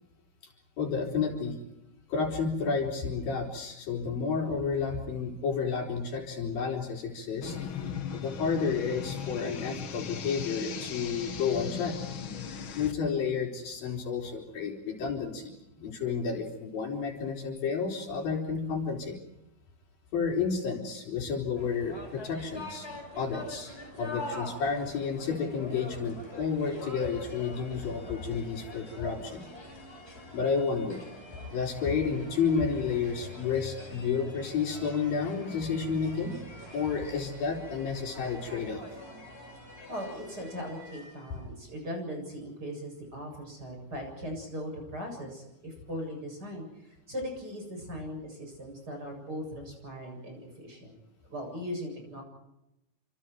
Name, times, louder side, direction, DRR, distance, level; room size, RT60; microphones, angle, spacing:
voice 1, 0.8-1.6 2.1-7.6 8.1-12.0 12.8-19.2 20.1-22.9 23.2-29.4 30.3-31.0 31.5-36.4 36.7-38.8, left 5 dB, 75° left, 1 dB, 5.9 m, -31 dB
sound 1, 7.4-12.9, left 7 dB, 55° left, 1.4 m, -38 dB
sound 2, 21.6-41.4, left 1 dB, 15° left, 6.2 m, -44 dB
voice 2, 39.9-51.0 51.2-52.2, equal, 25° right, 2 dB, 8.1 m, -39 dB
29.5 x 27.0 x 4.6 m, 0.90 s
omnidirectional pair, 4.2 m